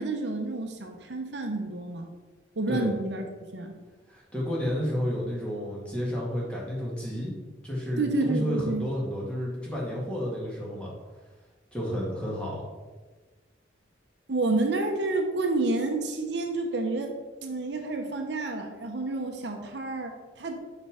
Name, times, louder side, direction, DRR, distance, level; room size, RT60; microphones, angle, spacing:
voice 1, 0.0-2.1 2.6-3.2 3.5-3.8 8.0-8.9 14.3-17.2 17.4-20.6, right 2 dB, 65° right, 3 dB, 0.9 m, -29 dB
voice 2, 4.1-7.3 7.6-10.9 11.7-12.6, equal, 5° left, -5 dB, 1.9 m, -31 dB
6.3 x 5.2 x 5.0 m, 1.3 s
head